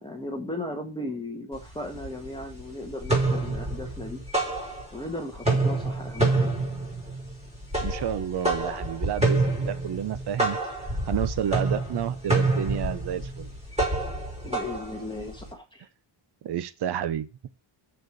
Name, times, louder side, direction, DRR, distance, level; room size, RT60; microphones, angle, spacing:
voice 1, 0.0-4.2 4.9-6.5 14.4-15.9, left 1 dB, 10° left, 1.6 m, -36 dB
sound 1, 1.5-1.6 2.0-2.6 2.9-5.1 5.4-15.5, right 2 dB, 10° right, 4.5 m, -27 dB
voice 2, 7.8-10.6 11.1-13.5 16.4-17.3, right 10 dB, 55° right, 0.9 m, -30 dB
7.7 x 6.8 x 6.3 m
wide cardioid pair, 165°, 50 cm